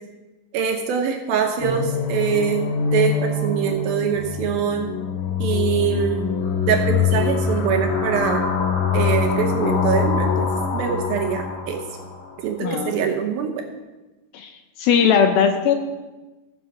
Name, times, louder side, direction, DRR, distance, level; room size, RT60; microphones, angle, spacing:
voice 1, 0.5-4.9 5.4-6.3 6.6-8.4 8.9-11.8 12.4-13.6, right 7 dB, 75° right, 3 dB, 2.5 m, -23 dB
sound 1, 1.6-12.4, left 6 dB, 50° left, 1.5 m, -24 dB
voice 2, 12.6-13.0 14.3-15.8, left 7 dB, 75° left, 6 dB, 2.3 m, -19 dB
14.5 x 7.5 x 5.4 m, 1.1 s
omnidirectional pair, 4.8 m